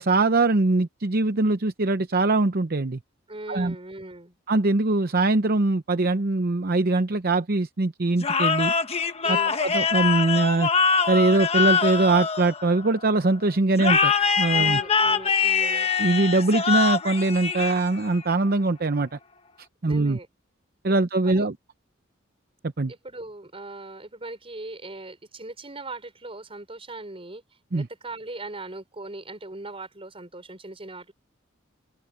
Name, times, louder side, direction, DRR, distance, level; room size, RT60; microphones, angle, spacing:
voice 1, 0.0-3.0 3.5-3.7 4.5-8.7 9.3-10.7 11.1-14.8 15.6-19.2 19.8-20.2 20.8-21.5 22.6-22.9 27.7-27.9, right 2 dB, 50° right, 0.8 m, -22 dB
voice 2, 3.3-4.3 9.2-9.6 14.5-15.9 19.9-20.3 20.9-21.5 22.9-27.4 27.7-31.1, right 2 dB, 30° right, 4.9 m, -39 dB
sound 1, 8.2-13.0 13.8-18.2, left 5 dB, 30° left, 1.4 m, -23 dB
open air
head